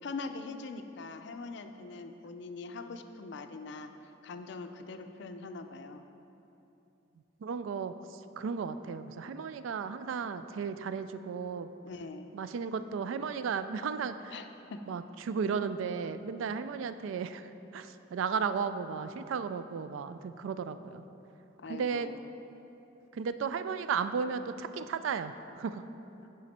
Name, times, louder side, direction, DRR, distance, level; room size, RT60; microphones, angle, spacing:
voice 1, 0.0-3.9 4.2-6.0 11.8-12.3 14.3-14.8 21.6-22.3 26.2-26.3, left 3 dB, 60° left, 7 dB, 0.4 m, -42 dB
voice 2, 7.4-11.7 12.3-14.4 14.9-21.0 21.7-22.1 23.1-25.8, right 6 dB, 80° right, 11 dB, 0.3 m, -34 dB
9.5 x 5.0 x 4.2 m, 2.9 s
head